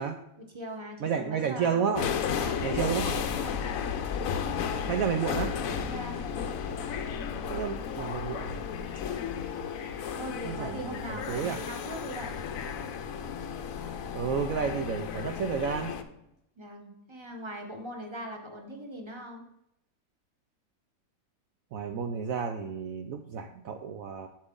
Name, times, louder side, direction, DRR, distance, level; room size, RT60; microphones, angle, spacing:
voice 1, 0.4-1.8 2.4-3.6 5.8-6.3 10.1-12.3 16.6-19.5, right 1 dB, 25° right, 3 dB, 0.7 m, -41 dB
voice 2, 1.0-2.1 2.6-3.2 4.9-5.6 7.5-8.6 10.4-11.6 14.1-15.9 21.7-24.3, right 6 dB, 75° right, 6 dB, 0.8 m, -31 dB
sound 1, 1.9-16.0, left 7 dB, 65° left, 0.9 m, -33 dB
7.4 x 6.6 x 3.7 m, 0.83 s
omnidirectional pair, 1.9 m